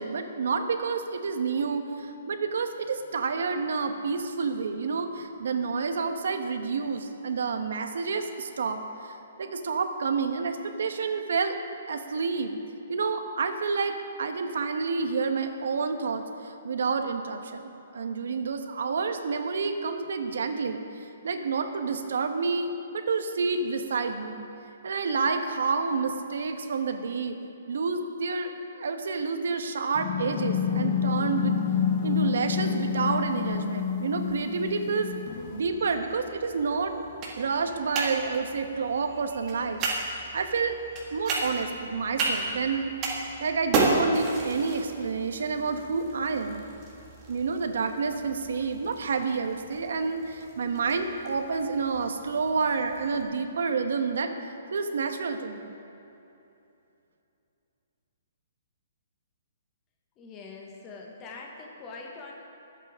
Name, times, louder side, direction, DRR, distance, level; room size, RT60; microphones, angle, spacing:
voice 1, 0.0-11.5 11.9-12.6 12.9-20.8 21.2-24.4 24.8-27.3 27.7-28.5 28.8-31.6 32.0-35.1 35.5-37.0 37.4-40.8 41.1-46.6 47.3-54.3 54.7-55.7, right 4 dB, 75° right, 6 dB, 1.2 m, -29 dB
sound 1, 29.9-35.6, left 7 dB, 35° left, 0.8 m, -28 dB
sound 2, 35.3-53.2, right 2 dB, 25° right, 1.9 m, -34 dB
voice 2, 60.2-62.4, left 3 dB, 20° left, -1 dB, 1.3 m, -43 dB
23.5 x 8.4 x 3.7 m, 2.8 s
hypercardioid pair, 165°, 0 cm